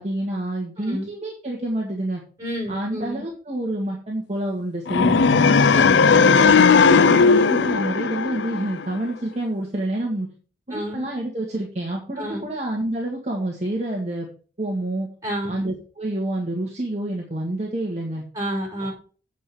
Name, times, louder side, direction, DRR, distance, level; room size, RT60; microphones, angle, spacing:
voice 1, 0.0-2.2 2.7-5.6 6.1-10.3 10.7-14.3 14.6-15.1 15.5-18.2, right 1 dB, 40° right, -1 dB, 1.9 m, -28 dB
voice 2, 0.8-1.1 2.4-3.2 5.7-6.1 10.7-11.0 12.2-12.5 15.2-15.6 18.3-18.9, equal, 20° right, -1 dB, 5.8 m, -29 dB
sound 1, 4.9-9.0, left 5 dB, 85° left, 0.5 m, -16 dB
8.6 x 5.2 x 7.0 m, 0.40 s
head